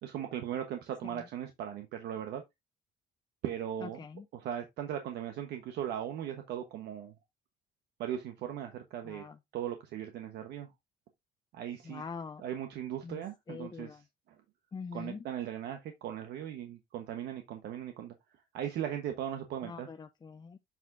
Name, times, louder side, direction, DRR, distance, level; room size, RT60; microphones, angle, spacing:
voice 1, 0.0-2.4 3.4-4.0 4.3-7.1 8.0-9.2 9.5-10.7 11.5-12.0 12.4-14.0 14.9-18.1 18.5-19.9, right 10 dB, 75° right, 1.2 m, -38 dB
voice 2, 3.8-4.3 9.0-9.4 11.8-12.4 13.0-14.0 14.7-15.2 19.6-20.6, left 5 dB, 25° left, 0.6 m, -44 dB
7.4 x 6.0 x 2.6 m
cardioid pair, 110°, 17 cm